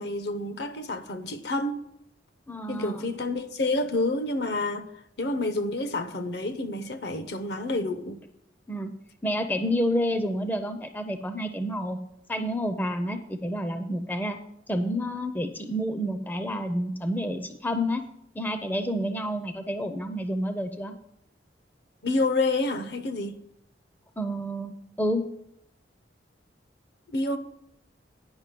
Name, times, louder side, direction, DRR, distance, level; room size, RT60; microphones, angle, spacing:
voice 1, 0.0-1.8 2.7-8.2 22.0-23.4 27.1-27.4, left 2 dB, 60° left, 0.8 m, -29 dB
voice 2, 2.5-3.1 8.7-8.9 9.2-12.0 12.3-14.4 14.7-18.0 18.3-20.9 24.2-25.3, equal, 10° left, 0.5 m, -29 dB
9.6 x 5.6 x 7.5 m
head